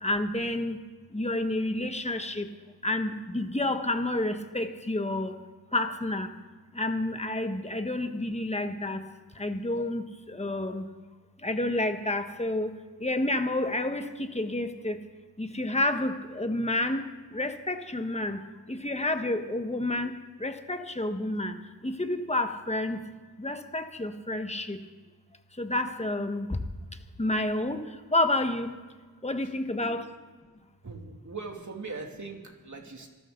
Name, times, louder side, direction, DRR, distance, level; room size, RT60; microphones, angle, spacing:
voice 1, 0.0-0.8 1.1-2.5 2.8-5.4 5.7-6.3 6.7-9.0 9.4-10.8 11.4-15.0 15.4-17.0 17.3-18.4 18.7-21.6 21.8-23.0 23.4-24.8 25.6-26.6 27.2-27.8 28.1-28.8 29.2-30.1, left 1 dB, 15° left, 7 dB, 1.4 m, -29 dB
voice 2, 30.8-33.1, right 4 dB, 50° right, 2 dB, 2.6 m, -40 dB
26.5 x 14.0 x 3.9 m, 1.3 s
wide cardioid pair, 65°, 38 cm